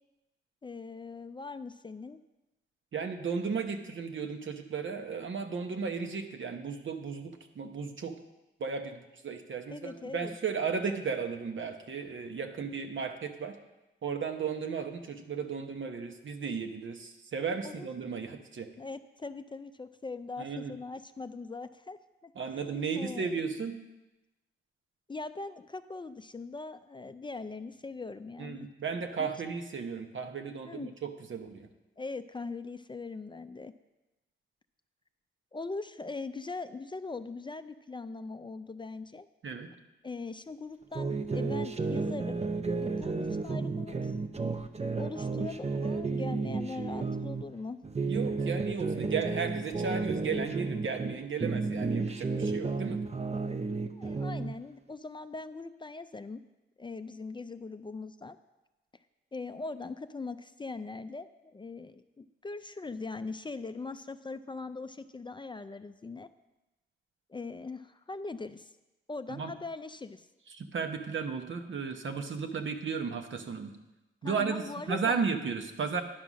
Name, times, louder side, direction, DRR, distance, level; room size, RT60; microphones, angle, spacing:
voice 1, 0.6-2.2 9.7-10.4 17.6-17.9 18.8-22.3 22.8-23.3 25.1-28.7 29.2-29.3 30.6-30.9 32.0-33.7 35.5-39.3 40.0-42.4 42.8-44.1 45.0-47.8 53.9-56.4 56.8-58.4 59.3-66.3 67.3-68.7 69.1-70.3 74.2-75.3, left 3 dB, 25° left, 11 dB, 0.3 m, -41 dB
voice 2, 2.9-8.2 8.6-13.6 14.0-18.7 20.4-20.7 22.4-23.8 28.4-31.7 39.4-39.7 48.1-53.0 69.3-69.5 70.5-73.7 74.2-76.0, right 5 dB, 70° right, 6 dB, 1.0 m, -35 dB
sound 1, 40.9-47.4 47.8-51.1 51.4-54.5, right 3 dB, 30° right, 0.6 m, -32 dB
10.5 x 5.5 x 6.2 m, 1.0 s
wide cardioid pair, 105°, 21 cm